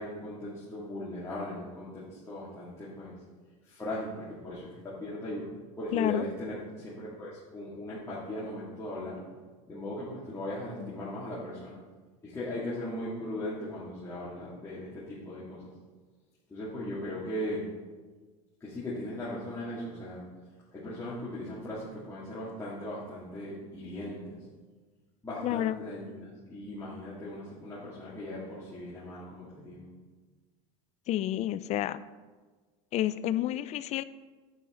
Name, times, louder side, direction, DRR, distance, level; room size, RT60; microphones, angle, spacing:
voice 1, 0.0-3.1 3.7-5.5 5.8-9.2 9.7-11.8 12.2-15.7 16.5-17.6 18.6-20.2 20.7-24.4 25.2-29.8, left 1 dB, 15° left, -9 dB, 2.4 m, -38 dB
voice 2, 5.9-6.2 10.8-10.9 25.4-25.8 31.1-32.0 32.9-34.0, left 13 dB, 40° left, 15 dB, 0.4 m, -29 dB
8.9 x 8.4 x 3.8 m, 1.4 s
supercardioid pair, 115°, 17 cm